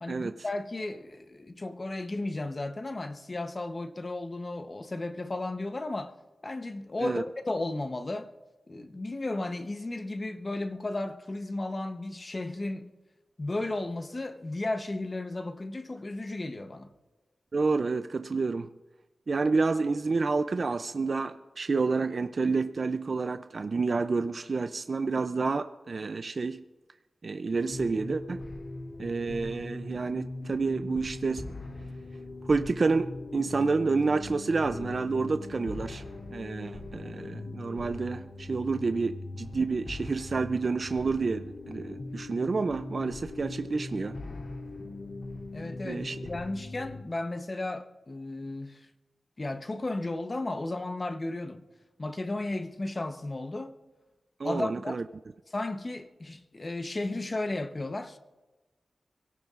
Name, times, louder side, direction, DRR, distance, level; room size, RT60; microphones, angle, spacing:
voice 1, 0.0-6.1 6.4-8.3 8.7-12.9 13.4-16.9 45.5-48.9 49.4-51.6 52.0-53.8 54.4-55.0 55.5-58.2, left 2 dB, 30° left, 0.8 m, -34 dB
voice 2, 17.5-18.7 19.3-26.6 27.2-28.4 29.0-31.5 32.4-36.0 36.3-44.2 45.8-46.2 54.4-55.0, right 4 dB, 50° right, 0.4 m, -29 dB
sound 1, 27.7-47.0, left 2 dB, 65° left, 2.9 m, -40 dB
27.5 x 17.0 x 2.5 m
wide cardioid pair, 135°, 0 cm